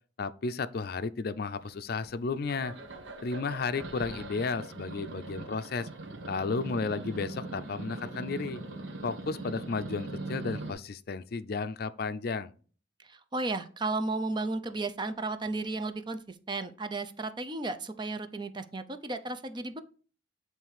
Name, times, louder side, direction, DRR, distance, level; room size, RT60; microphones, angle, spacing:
voice 1, 0.2-2.7 3.2-5.9 6.3-8.6 9.0-12.5, left 4 dB, 55° left, 0.5 m, -33 dB
sound 1, 1.6-2.1 2.5-10.7, right 2 dB, 80° right, 1.3 m, -41 dB
voice 2, 13.1-16.2 16.5-19.8, right 3 dB, 25° right, 0.5 m, -34 dB
8.9 x 3.3 x 4.8 m
head